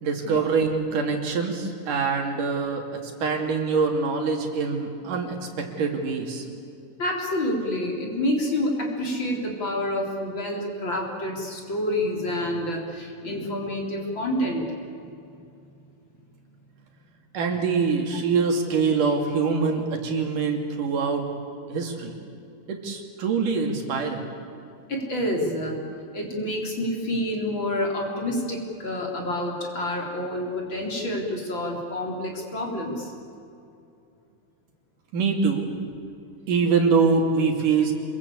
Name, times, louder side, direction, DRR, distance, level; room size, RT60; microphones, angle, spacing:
voice 1, 0.0-2.8 3.2-6.5 17.3-21.3 21.7-22.1 22.7-24.3 35.1-35.7 36.5-37.9, right 5 dB, 75° right, 3 dB, 4.2 m, -24 dB
voice 2, 7.0-14.7 24.9-25.8 26.1-33.1, left 1 dB, 35° left, 0 dB, 4.3 m, -28 dB
28.0 x 22.0 x 8.5 m, 2.6 s
omnidirectional pair, 3.8 m